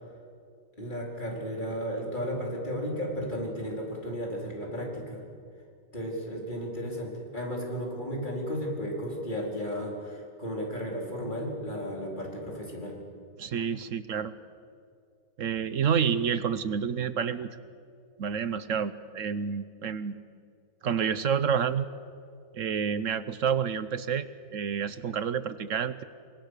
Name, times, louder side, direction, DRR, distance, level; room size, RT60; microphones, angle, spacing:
voice 1, 0.8-5.2 5.9-13.0, equal, 30° left, -1 dB, 4.7 m, -34 dB
voice 2, 13.4-14.3 15.4-17.5 18.2-20.1 20.8-21.9 22.5-26.0, right 7 dB, 65° right, 14 dB, 1.2 m, -29 dB
27.5 x 24.0 x 6.6 m, 2.2 s
omnidirectional pair, 1.5 m